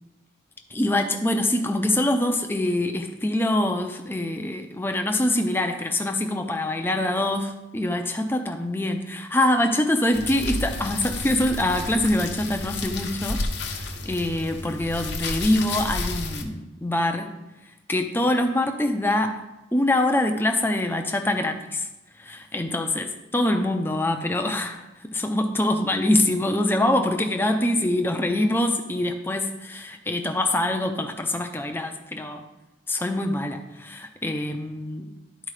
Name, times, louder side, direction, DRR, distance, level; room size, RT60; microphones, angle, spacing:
voice 1, 0.7-13.4 13.8-17.4 17.9-19.4 19.7-21.9 22.2-32.4 32.9-35.1, left 1 dB, 10° left, 5 dB, 0.5 m, -24 dB
sound 1, 10.1-16.4, left 2 dB, 60° left, 0.9 m, -31 dB
11.5 x 4.6 x 3.3 m, 1.0 s
head